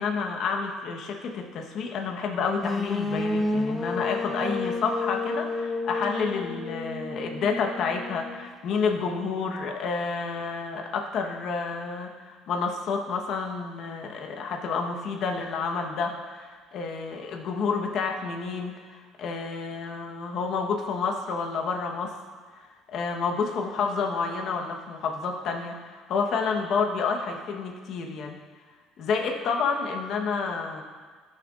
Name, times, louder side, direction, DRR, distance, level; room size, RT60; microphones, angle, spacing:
voice 1, 0.0-22.1 22.9-28.4 29.0-30.8, left 5 dB, 60° left, 2 dB, 1.0 m, -29 dB
sound 1, 2.6-8.5, left 2 dB, 20° left, 0.9 m, -30 dB
13.5 x 6.7 x 2.4 m, 1.5 s
supercardioid pair, 90°, 0 cm